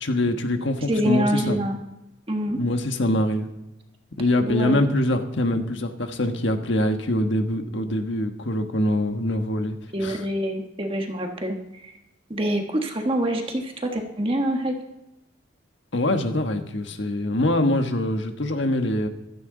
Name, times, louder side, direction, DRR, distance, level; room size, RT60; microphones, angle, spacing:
voice 1, 0.0-1.6 2.5-3.5 4.2-9.7 10.0-10.2 15.9-19.1, left 1 dB, 60° left, 6 dB, 1.5 m, -24 dB
voice 2, 0.9-1.8 2.3-2.6 4.5-4.9 9.9-11.9 12.3-14.7, equal, 25° right, 3 dB, 1.5 m, -26 dB
16.0 x 13.0 x 4.0 m, 0.90 s
head